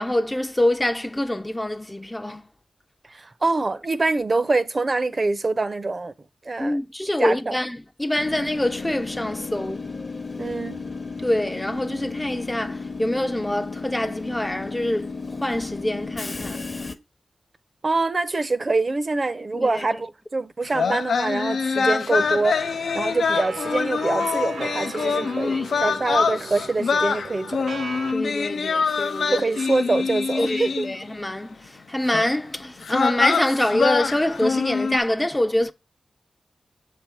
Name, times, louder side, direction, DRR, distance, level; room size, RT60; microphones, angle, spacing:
voice 1, 0.0-2.4 6.6-9.9 11.2-16.7 19.5-19.9 25.4-26.0 28.1-29.5 30.4-35.7, left 1 dB, 15° left, 0.4 m, -25 dB
voice 2, 3.1-6.1 6.5-6.8 7.2-7.6 10.4-10.9 17.8-22.6 22.9-27.6 29.3-30.9, right 3 dB, 40° right, 0.5 m, -25 dB
Train / Subway metro underground, 8.2-16.9, left 4 dB, 40° left, 0.7 m, -34 dB
sound 1, 20.7-31.1 32.1-32.3 32.8-35.0, left 5 dB, 80° left, 0.4 m, -25 dB
sound 2, 22.1-28.1, right 4 dB, 80° right, 0.7 m, -37 dB
6.7 x 3.4 x 4.3 m
wide cardioid pair, 80°, 0 cm